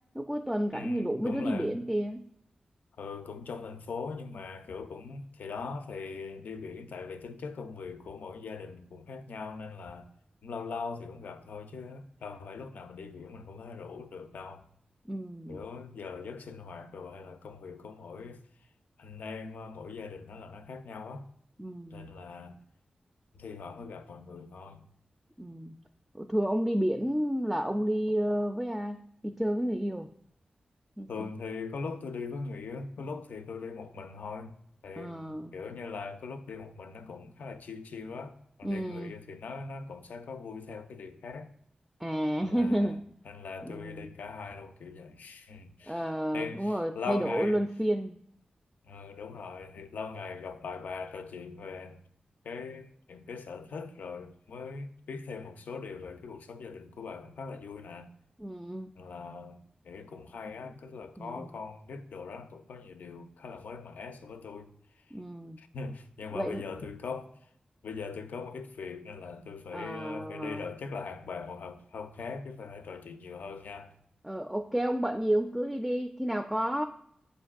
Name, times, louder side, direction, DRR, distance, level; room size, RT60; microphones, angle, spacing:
voice 1, 0.1-2.3 15.1-15.6 21.6-22.1 25.4-25.7 26.1-30.1 31.0-31.3 35.0-35.6 38.6-39.1 42.0-43.0 43.6-44.1 45.9-48.2 58.4-58.9 61.2-61.5 65.1-65.6 66.3-66.6 69.7-70.7 74.2-76.9, equal, 5° right, 0.3 m, -31 dB
voice 2, 0.7-1.7 3.0-10.1 10.4-14.6 15.5-18.4 19.0-21.3 21.9-22.6 23.3-24.9 31.1-34.5 34.8-41.5 42.4-43.0 43.2-46.1 46.3-47.6 48.8-52.0 52.4-58.1 59.0-64.7 65.6-67.3 67.8-73.9, left 4 dB, 85° left, 0.4 m, -41 dB
7.7 x 2.6 x 2.4 m
cardioid pair, 55°, 3 cm